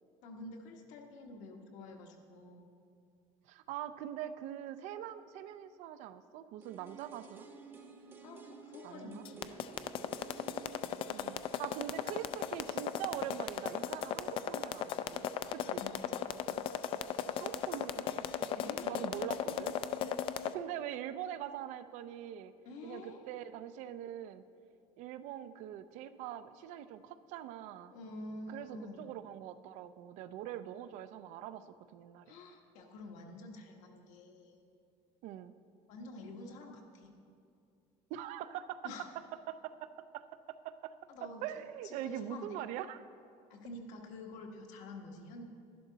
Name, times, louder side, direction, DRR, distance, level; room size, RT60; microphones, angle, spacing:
voice 1, 0.2-2.7 8.2-9.5 15.7-16.2 18.5-19.1 22.6-23.2 27.9-29.1 32.3-34.6 35.9-37.1 38.8-39.1 41.1-42.6 43.5-45.5, left 2 dB, 70° left, 2 dB, 1.4 m, -48 dB
voice 2, 3.5-7.5 8.8-9.2 11.1-15.8 17.3-18.3 18.8-19.8 20.5-22.5 22.8-24.4 25.0-27.9 28.5-32.4 35.2-35.5 38.1-38.8 39.5-40.9 41.4-43.0, right 11 dB, 65° right, 12 dB, 0.5 m, -43 dB
sound 1, 6.6-12.5 12.8-12.9, right 5 dB, 15° right, 0.8 m, -54 dB
sound 2, 9.2-20.5, left 10 dB, 45° left, 0.4 m, -36 dB
12.0 x 11.5 x 4.0 m, 2.5 s
cardioid pair, 165°, 13 cm